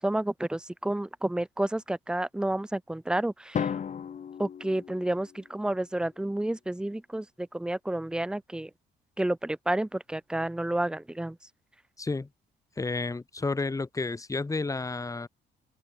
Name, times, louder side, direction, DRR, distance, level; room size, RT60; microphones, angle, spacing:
voice 1, 0.0-3.7 4.4-8.7 9.2-11.4, right 1 dB, 5° right, 0.4 m, -30 dB
Drum, 3.5-5.6, left 7 dB, 40° left, 0.7 m, -35 dB
voice 2, 12.0-12.3 12.8-15.3, left 3 dB, 15° left, 1.0 m, -31 dB
open air
cardioid pair, 90°, 20 cm